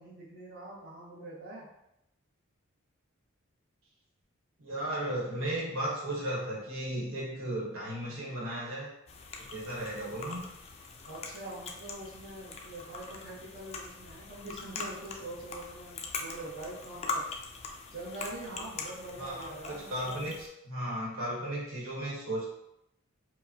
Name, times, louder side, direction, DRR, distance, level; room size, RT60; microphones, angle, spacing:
voice 1, 0.0-1.7 11.0-17.3 17.9-20.3, right 2 dB, 50° right, -8 dB, 0.9 m, -44 dB
voice 2, 4.6-8.9 9.4-10.4 19.2-22.5, right 1 dB, 75° right, -5 dB, 1.1 m, -35 dB
sound 1, 9.1-20.5, left 3 dB, 30° left, 0.3 m, -42 dB
4.7 x 2.1 x 2.8 m, 0.82 s
head